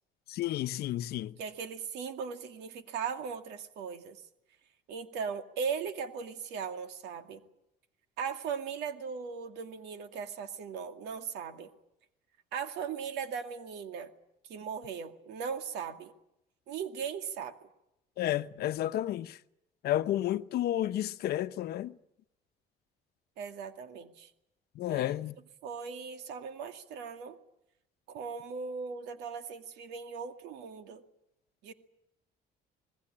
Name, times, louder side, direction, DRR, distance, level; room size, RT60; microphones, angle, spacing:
voice 1, 0.3-1.3 18.2-19.4 19.8-21.9 24.8-25.4, left 13 dB, 70° left, 0.9 m, -31 dB
voice 2, 1.4-4.2 4.9-7.4 8.2-11.7 12.5-14.1 14.5-16.1 16.7-17.6 23.4-24.3 24.9-25.1 25.6-27.4 28.1-31.0 31.6-31.7, right 6 dB, 85° right, 2.3 m, -38 dB
26.5 x 19.5 x 8.7 m
cardioid pair, 110°, 17 cm